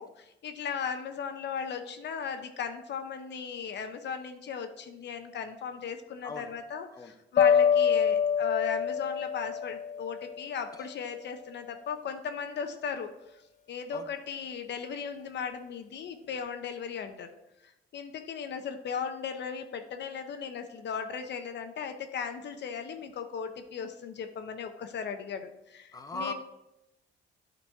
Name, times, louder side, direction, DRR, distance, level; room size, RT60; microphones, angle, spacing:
voice 1, 0.0-13.1 13.7-17.3 17.6-26.3, left 6 dB, 60° left, 7 dB, 0.7 m, -37 dB
voice 2, 6.2-6.5 6.9-7.2 10.7-10.9 13.9-14.1 25.9-26.3, left 2 dB, 20° left, 6 dB, 0.8 m, -39 dB
sound 1, 7.4-10.5, left 7 dB, 40° left, 0.4 m, -25 dB
9.0 x 4.0 x 4.7 m, 0.89 s
cardioid pair, 90°, 20 cm